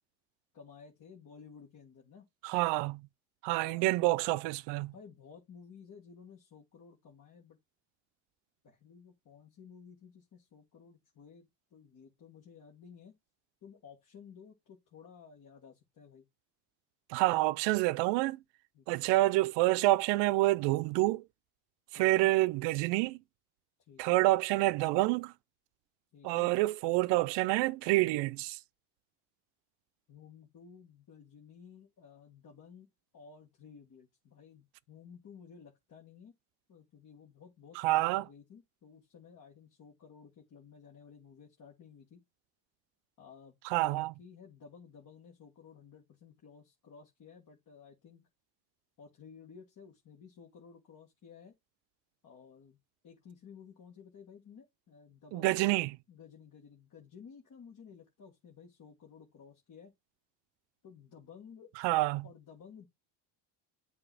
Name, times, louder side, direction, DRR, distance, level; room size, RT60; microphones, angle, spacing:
voice 1, 0.5-2.3 3.5-3.9 4.8-7.6 8.6-13.1 13.6-16.3 18.7-19.1 21.9-22.3 23.9-24.2 26.1-26.5 30.1-36.3 36.7-42.2 43.2-48.3 49.0-51.5 52.2-52.8 53.0-55.7 56.1-59.9 60.8-61.7 62.2-62.9, left 6 dB, 45° left, 1.8 m, -54 dB
voice 2, 2.4-3.0 3.4-4.9 17.1-18.4 18.9-21.2 21.9-23.2 24.0-25.3 26.2-28.6 37.8-38.2 43.7-44.1 55.3-56.0 61.8-62.3, right 19 dB, 70° right, 0.5 m, -28 dB
7.7 x 3.0 x 6.1 m
supercardioid pair, 100°, 44 cm